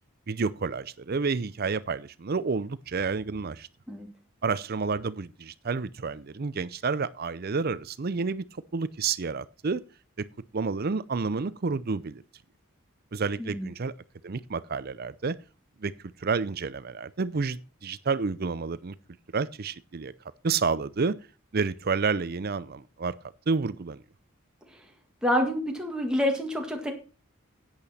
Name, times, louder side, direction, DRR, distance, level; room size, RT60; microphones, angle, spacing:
voice 1, 0.3-3.7 4.4-8.5 8.7-9.8 10.2-10.3 10.5-12.2 13.1-13.9 14.2-15.4 15.8-15.9 16.2-18.9 19.3-20.1 20.4-21.2 21.5-23.1 23.5-24.0, right 4 dB, 45° right, 0.6 m, -29 dB
voice 2, 25.2-26.9, left 1 dB, 5° right, 1.8 m, -27 dB
10.5 x 8.9 x 4.2 m
head